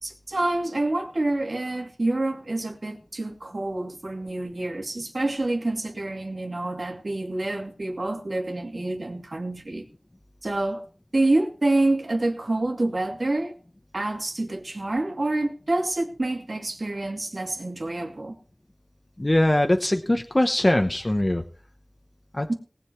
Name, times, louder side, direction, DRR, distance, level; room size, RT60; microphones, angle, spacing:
voice 1, 0.0-9.8 10.4-10.8 11.1-13.5 13.9-18.4 22.5-22.6, right 2 dB, 70° right, 2.4 m, -27 dB
voice 2, 19.2-21.4 22.3-22.5, left 1 dB, 30° left, 1.0 m, -21 dB
18.5 x 8.0 x 4.6 m
wide cardioid pair, 55°, 0 cm